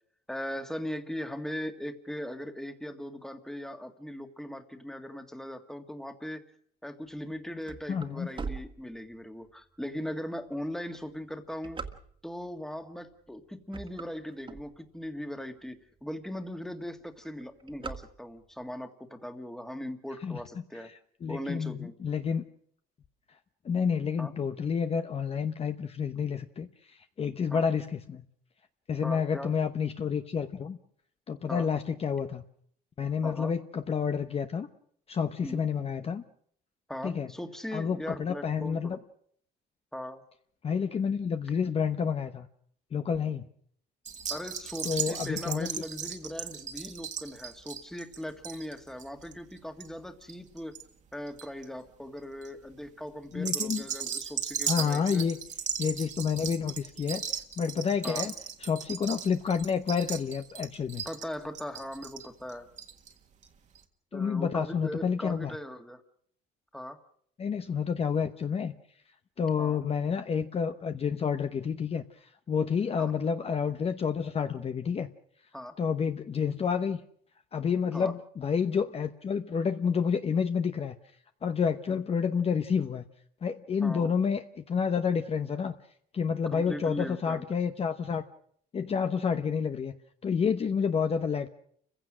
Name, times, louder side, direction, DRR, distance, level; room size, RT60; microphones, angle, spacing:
voice 1, 0.3-6.4 6.8-11.8 12.2-20.9 21.3-21.9 24.2-24.3 27.5-27.7 29.0-29.5 31.5-31.7 33.2-33.5 35.4-35.6 36.9-39.0 39.9-40.2 44.3-50.8 51.1-55.3 58.0-58.3 61.1-62.7 64.1-66.0 66.7-67.0 69.6-69.8 73.0-73.1 75.5-75.8 77.9-78.1 81.9-82.0 83.8-84.1 86.5-87.4, equal, 5° left, 7 dB, 1.9 m, -39 dB
sound 1, 7.4-9.4 10.0-10.1 10.8-12.5 13.1-13.3 13.6-15.2 15.7-15.8 16.0-16.1 16.4-16.7 17.0-18.6, right 4 dB, 30° right, 2.0 m, -41 dB
voice 2, 7.9-8.3 20.2-20.4 21.2-22.4 23.6-28.2 28.9-30.8 31.3-32.4 33.0-34.7 35.1-36.2 37.0-37.3 37.7-39.0 40.6-42.5 42.9-43.5 44.8-45.7 53.3-53.8 54.7-55.4 55.8-58.3 58.6-61.0 64.1-65.5 67.4-68.7 69.4-72.0 72.5-75.1 75.8-77.0 77.5-81.0 81.4-83.1 83.4-85.7 86.1-88.2 88.7-89.9 90.2-91.5, left 6 dB, 35° left, 8 dB, 1.0 m, -29 dB
sound 2, 44.1-50.8 51.1-51.6 52.2-52.5 53.3-63.1 63.4-63.5 63.8-63.9, right 7 dB, 45° right, 1.9 m, -37 dB
29.0 x 16.0 x 6.3 m, 0.64 s
cardioid pair, 110°, 17 cm